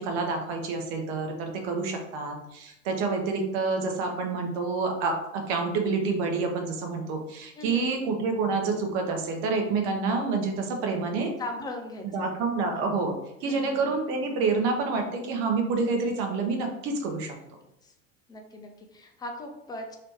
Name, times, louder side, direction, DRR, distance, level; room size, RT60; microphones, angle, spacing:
voice 1, 0.0-11.3 12.0-13.1 13.4-17.3, right 4 dB, 50° right, 3 dB, 0.9 m, -28 dB
voice 2, 7.6-7.9 11.4-12.3 13.4-14.0 17.8-17.9 18.3-20.0, left 1 dB, 10° left, 3 dB, 0.5 m, -39 dB
3.0 x 2.9 x 3.3 m, 0.83 s
figure-of-eight pair, 75°, 38 cm